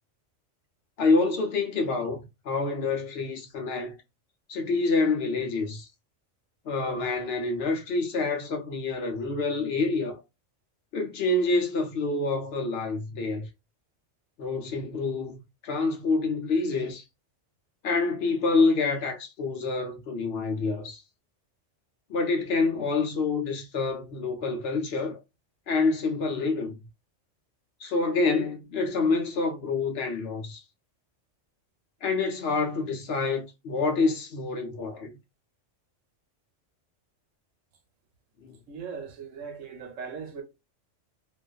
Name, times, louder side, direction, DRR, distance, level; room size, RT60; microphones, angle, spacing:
voice 1, 1.0-2.2 2.4-3.9 4.5-5.9 6.6-10.2 10.9-13.4 14.4-17.0 17.8-21.0 22.1-25.2 25.7-26.8 27.8-30.6 32.0-35.2 38.4-38.6, left 3 dB, 60° left, 0.8 m, -27 dB
voice 2, 38.7-40.4, right 6 dB, 85° right, 1.1 m, -39 dB
2.5 x 2.4 x 2.3 m
omnidirectional pair, 1.3 m